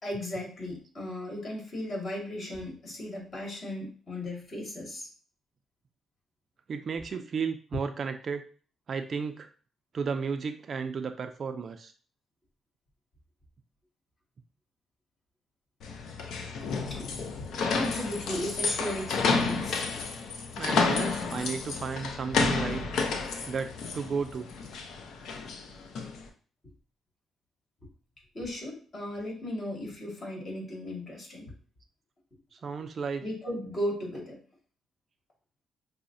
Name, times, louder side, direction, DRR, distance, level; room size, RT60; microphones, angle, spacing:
voice 1, 0.0-5.1 16.9-17.1 17.7-19.9 20.9-21.1 28.3-31.5 33.2-34.4, left 1 dB, 40° left, -3 dB, 1.9 m, -36 dB
voice 2, 6.7-8.4 8.9-9.5 9.9-11.9 20.6-22.9 23.4-24.5 32.6-33.2, right 5 dB, 50° right, 8 dB, 0.3 m, -33 dB
sound 1, 15.8-26.2, left 4 dB, 75° left, 0.5 m, -31 dB
5.6 x 2.0 x 2.6 m, 0.40 s
cardioid pair, 90°, 0 cm